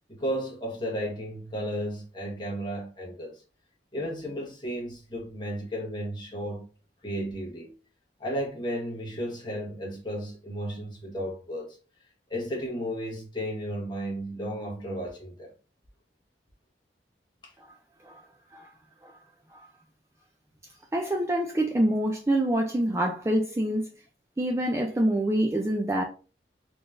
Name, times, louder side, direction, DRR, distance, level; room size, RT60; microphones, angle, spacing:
voice 1, 0.1-3.4 3.9-6.6 7.0-7.7 8.2-11.8 12.3-15.5 17.4-17.5, equal, 25° left, 1.3 m, -34 dB
voice 2, 20.9-23.9 24.4-26.0, right 1 dB, 15° right, 0.4 m, -26 dB
4.0 x 3.3 x 2.5 m
head